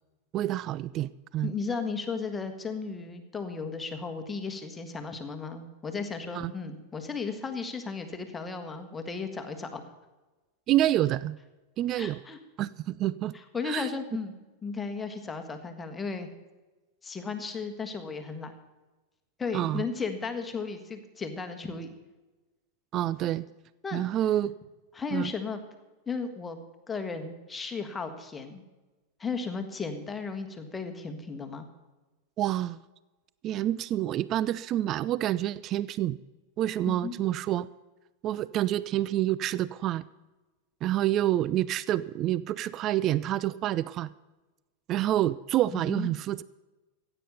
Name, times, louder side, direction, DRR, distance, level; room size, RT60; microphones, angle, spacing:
voice 1, 0.3-1.5 6.3-6.5 10.7-11.4 11.8-12.2 12.6-13.3 13.6-13.9 19.5-19.8 22.9-23.5 23.9-24.5 25.1-25.3 32.4-32.8 33.4-36.2 36.6-37.7 38.2-40.0 40.8-44.1 44.9-46.4, right 13 dB, 35° right, 19 dB, 0.3 m, -28 dB
voice 2, 1.4-9.8 12.0-12.4 13.3-14.3 14.6-16.3 17.0-18.5 19.4-21.9 23.8-24.0 24.9-25.6 26.1-26.6 26.9-28.6 29.2-31.7 36.9-37.1 45.7-46.1, left 4 dB, 15° left, 6 dB, 1.6 m, -35 dB
15.5 x 9.0 x 6.8 m, 1.2 s
figure-of-eight pair, 90°, 0 cm